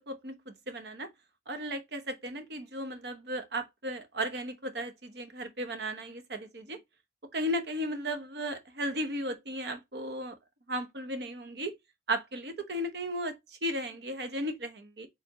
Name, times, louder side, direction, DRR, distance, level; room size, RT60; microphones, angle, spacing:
voice 1, 0.1-1.1 1.5-6.8 7.3-10.4 10.7-11.7 12.1-15.1, right 1 dB, 60° right, 0.9 m, -35 dB
4.5 x 3.5 x 2.8 m
head